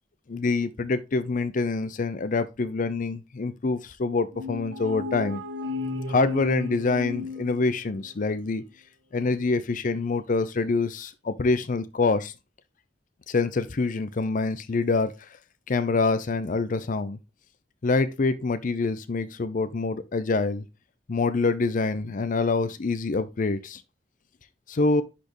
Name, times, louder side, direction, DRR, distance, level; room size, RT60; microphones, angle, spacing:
voice 1, 0.3-5.4 6.1-8.6 9.1-12.3 13.3-15.1 15.7-17.2 17.8-20.6 21.1-23.8 24.7-25.0, left 3 dB, 45° left, 0.5 m, -26 dB
sound 1, 4.3-8.1, left 3 dB, 85° right, 1.1 m, -34 dB
10.0 x 4.3 x 3.0 m
head